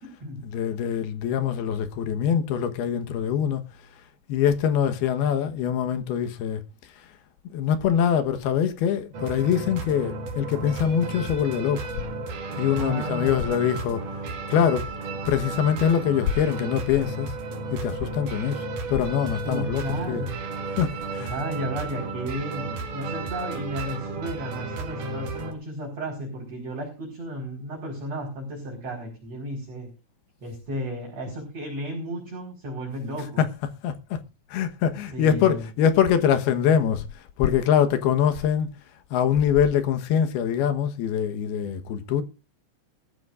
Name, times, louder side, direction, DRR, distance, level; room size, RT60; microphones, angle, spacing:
voice 1, 0.4-3.6 4.3-6.6 7.0-7.1 7.5-11.9 12.6-14.1 14.5-14.9 15.3-17.4 17.7-20.3 20.8-21.4 33.2-34.2 34.5-38.7 39.1-42.2, left 8 dB, 70° left, 2.9 m, -24 dB
sound 1, 9.1-25.5, right 3 dB, 50° right, 3.4 m, -33 dB
voice 2, 12.8-13.6 19.4-20.4 21.2-29.9 30.4-33.4 35.1-35.7, equal, 35° right, 5.4 m, -33 dB
19.0 x 14.5 x 2.5 m
omnidirectional pair, 5.1 m